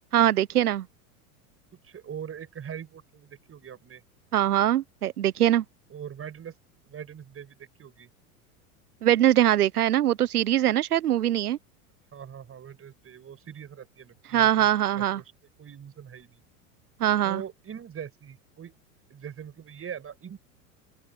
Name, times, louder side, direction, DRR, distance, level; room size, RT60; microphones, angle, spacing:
voice 1, 0.1-0.9 4.3-5.6 9.0-11.6 14.3-15.2 17.0-17.4, right 12 dB, 85° right, 1.1 m, -22 dB
voice 2, 1.8-4.0 5.9-6.5 6.9-8.1 12.1-15.3 15.6-16.4 17.2-18.7 19.1-20.4, right 8 dB, 30° right, 6.6 m, -42 dB
open air
hypercardioid pair, 85°, 44 cm